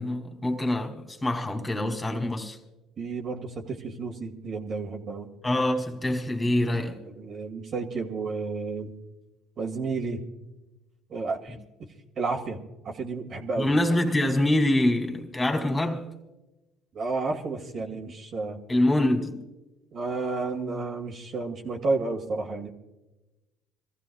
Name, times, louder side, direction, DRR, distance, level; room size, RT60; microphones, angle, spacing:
voice 1, 0.0-2.6 5.4-7.0 13.6-16.1 18.7-19.4, left 1 dB, 20° left, 2.7 m, -25 dB
voice 2, 3.0-5.3 7.0-8.9 9.6-10.2 11.1-11.6 12.2-13.7 16.9-18.6 19.9-22.7, right 3 dB, 50° right, 2.5 m, -31 dB
26.0 x 15.5 x 2.4 m
supercardioid pair, 75°, 0 cm